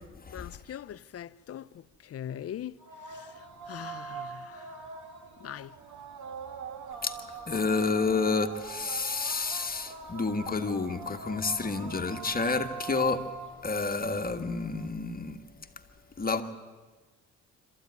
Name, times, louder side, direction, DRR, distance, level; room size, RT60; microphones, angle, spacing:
voice 1, 0.3-2.8 3.1-4.7 5.4-5.7, left 10 dB, 50° left, 0.7 m, -42 dB
sound 1, 2.8-14.9, right 5 dB, 75° right, 2.8 m, -43 dB
voice 2, 7.5-13.2 13.6-15.4 16.2-16.4, left 4 dB, 30° left, 1.6 m, -29 dB
26.5 x 14.0 x 9.5 m
cardioid pair, 90°, 30 cm